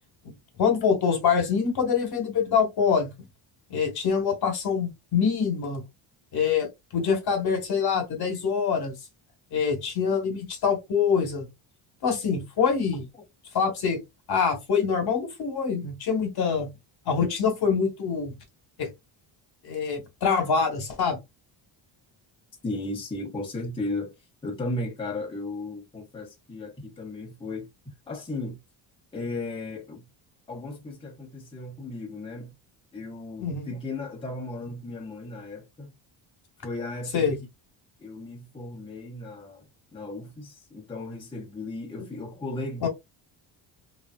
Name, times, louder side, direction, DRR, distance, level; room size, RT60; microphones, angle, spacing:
voice 1, 0.6-3.1 3.7-5.8 6.3-8.9 9.5-11.5 12.0-13.0 13.5-14.0 14.3-16.7 17.1-18.3 18.8-18.9 19.6-21.2 33.4-33.7 37.1-37.4 42.8-42.9, left 6 dB, 50° left, 1.1 m, -25 dB
voice 2, 22.6-24.1 24.4-27.7 28.1-28.6 29.1-30.0 30.5-32.5 32.9-35.9 36.6-37.3 38.0-39.6 39.9-42.9, left 2 dB, 10° left, 0.7 m, -35 dB
3.1 x 2.5 x 2.2 m
cardioid pair, 160°, 48 cm